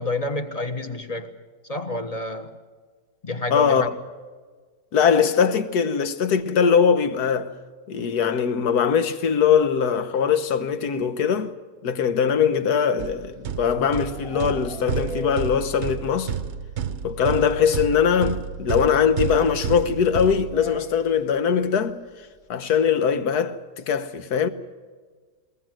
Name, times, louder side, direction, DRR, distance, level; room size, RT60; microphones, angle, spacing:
voice 1, 0.0-1.3 1.7-2.5 3.2-3.9, left 2 dB, 25° left, 1.3 m, -28 dB
voice 2, 3.5-3.9 4.9-7.5 7.9-11.5 11.8-16.3 17.0-22.0 22.5-24.5, left 7 dB, 65° left, 1.6 m, -21 dB
sound 1, 13.0-21.0, right 7 dB, 50° right, 0.9 m, -31 dB
sound 2, 13.2-16.3 16.5-16.6 16.9-17.0 17.3-17.4 18.7-18.8 20.5-21.3, right 1 dB, 20° right, 1.2 m, -39 dB
21.5 x 20.5 x 7.8 m
omnidirectional pair, 1.9 m